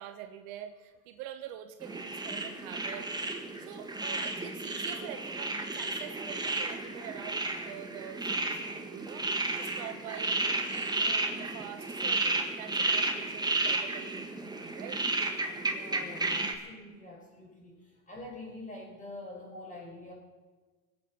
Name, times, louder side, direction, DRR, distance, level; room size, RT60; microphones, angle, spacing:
voice 1, 0.0-3.1 3.6-15.0 15.3-15.4, right 11 dB, 60° right, 8 dB, 1.2 m, -46 dB
sound 1, 1.8-16.5, right 2 dB, 10° right, 1.5 m, -33 dB
voice 2, 15.6-20.1, left 1 dB, 15° left, -1 dB, 5.6 m, -46 dB
23.5 x 8.1 x 5.9 m, 1.3 s
hypercardioid pair, 100°, 49 cm